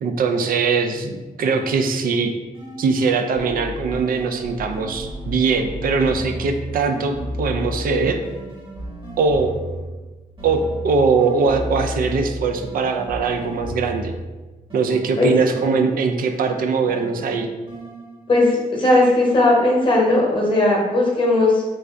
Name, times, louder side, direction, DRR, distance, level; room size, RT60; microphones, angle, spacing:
voice 1, 0.0-2.3 2.8-8.2 9.2-9.5 10.4-14.1 14.7-17.5, right 4 dB, 75° right, 5 dB, 0.4 m, -21 dB
sound 1, 2.5-3.1 3.3-10.0 10.4-14.3 14.7-18.4, equal, 35° right, 1.1 m, -33 dB
voice 2, 18.3-21.6, left 2 dB, 35° left, -3 dB, 0.9 m, -17 dB
3.2 x 2.5 x 3.5 m, 1.2 s
wide cardioid pair, 170°, 15 cm